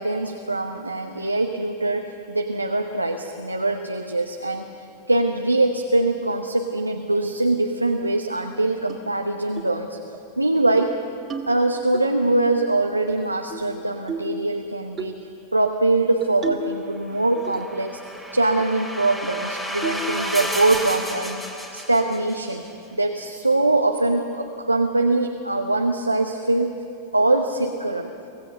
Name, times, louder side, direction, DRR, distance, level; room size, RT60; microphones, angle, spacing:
voice 1, 0.0-4.7 5.1-10.0 10.4-10.9 11.5-15.1 15.5-18.0 18.3-21.4 21.7-22.6 22.9-26.8 27.1-28.1, right 2 dB, 85° right, 4 dB, 0.9 m, -23 dB
sound 1, 8.9-9.0 9.6-9.8 10.1-10.2 10.6-10.9 11.3-12.0 13.1-13.7 14.1-14.4 15.0-15.2 16.2-16.8 17.1-17.8 18.1-18.2 18.6-18.8 19.2-19.3 19.8-20.1 20.4-20.8, right 3 dB, 20° right, 1.9 m, -33 dB
sound 2, 17.2-22.5, equal, 5° left, 2.4 m, -32 dB
24.5 x 16.5 x 6.8 m, 2.8 s
figure-of-eight pair, 90°, 0 cm